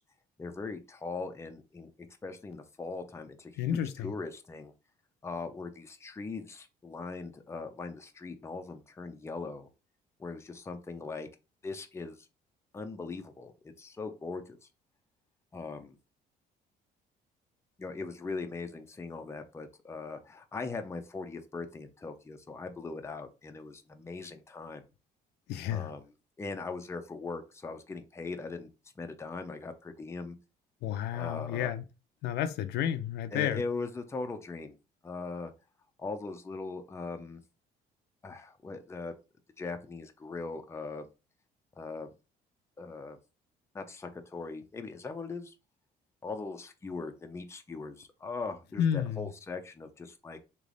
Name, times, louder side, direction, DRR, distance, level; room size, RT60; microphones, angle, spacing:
voice 1, 0.4-1.9 2.2-4.7 5.2-9.7 10.2-11.3 11.6-12.3 12.7-14.7 15.5-16.0 17.8-24.8 25.7-26.0 26.4-28.7 29.0-30.4 31.1-31.7 33.3-34.8 35.0-35.5 36.0-37.4 38.2-39.1 39.6-41.1 41.8-42.1 42.8-43.2 43.7-45.5 46.2-50.4, left 3 dB, 15° left, 0.6 m, -40 dB
voice 2, 3.6-4.1 25.5-25.9 30.8-31.8 32.2-33.6 48.8-49.3, left 10 dB, 80° left, 0.5 m, -31 dB
3.3 x 3.0 x 3.8 m
cardioid pair, 110°, 17 cm